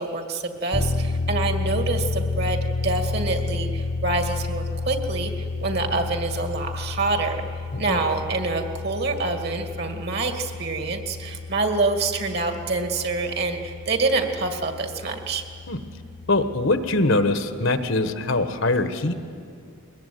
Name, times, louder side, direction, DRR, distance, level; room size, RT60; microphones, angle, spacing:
voice 1, 0.0-2.6 2.8-5.3 5.6-7.4 7.8-15.4, right 3 dB, 45° right, 5 dB, 2.2 m, -26 dB
sound 1, 0.7-17.1, left 3 dB, 25° left, 0.8 m, -31 dB
voice 2, 16.3-19.2, left 2 dB, 60° left, 9 dB, 1.3 m, -23 dB
22.0 x 20.5 x 9.4 m, 2.3 s
head